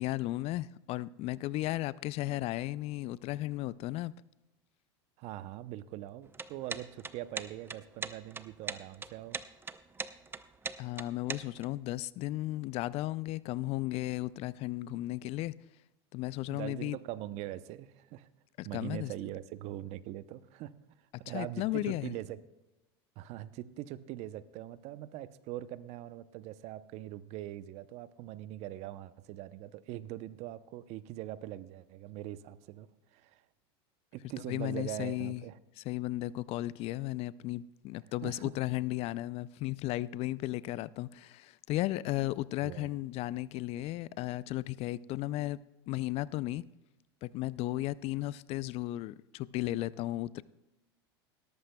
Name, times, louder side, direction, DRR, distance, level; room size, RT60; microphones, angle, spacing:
voice 1, 0.0-4.1 10.8-15.5 16.1-17.0 18.6-19.1 21.3-22.1 34.5-35.4 35.8-45.6 45.9-46.6 47.2-50.4, left 16 dB, 50° left, 0.4 m, -35 dB
voice 2, 5.2-9.4 16.5-18.3 18.6-20.7 21.3-22.4 23.2-33.4 34.1-35.6 38.2-38.5 42.6-42.9, right 14 dB, 55° right, 0.7 m, -42 dB
sound 1, 6.2-11.6, right 4 dB, 15° right, 0.7 m, -40 dB
18.0 x 13.5 x 2.3 m
hypercardioid pair, 100°, 14 cm